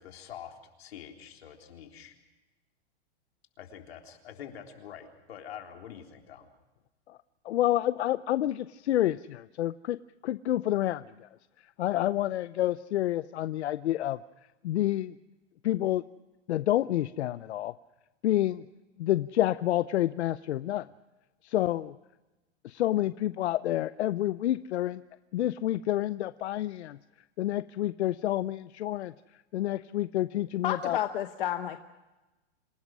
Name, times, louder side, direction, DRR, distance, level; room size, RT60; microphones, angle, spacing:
voice 1, 0.0-2.2 3.6-6.5, left 9 dB, 70° left, 3 dB, 3.7 m, -46 dB
voice 2, 7.4-10.0 10.2-11.3 11.6-14.2 14.6-15.2 15.6-16.0 16.5-17.7 18.2-18.6 19.0-20.9 21.4-22.0 22.6-25.0 25.3-27.0 27.4-29.1 29.5-31.0, left 13 dB, 85° left, 14 dB, 0.7 m, -28 dB
voice 3, 30.6-31.8, left 11 dB, 50° left, 8 dB, 1.0 m, -30 dB
27.0 x 18.0 x 6.2 m, 1.1 s
supercardioid pair, 180°, 32 cm